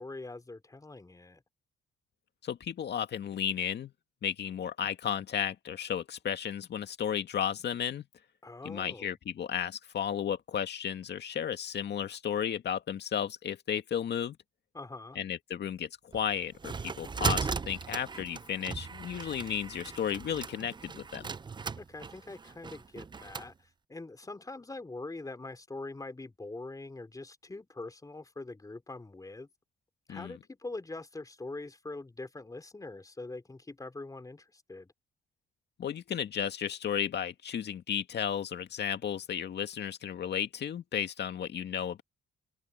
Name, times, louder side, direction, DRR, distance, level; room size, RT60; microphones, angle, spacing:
voice 1, 0.0-1.4 8.4-9.1 14.7-15.2 21.8-29.5 30.1-34.9, left 2 dB, 15° left, 4.0 m, -43 dB
voice 2, 2.4-3.9 4.2-8.1 8.6-14.4 15.2-21.3 30.1-30.4 35.8-42.0, left 8 dB, 60° left, 2.2 m, -34 dB
sound 1, 16.1-23.5, right 5 dB, 25° right, 0.5 m, -37 dB
cardioid pair, 90°, 20 cm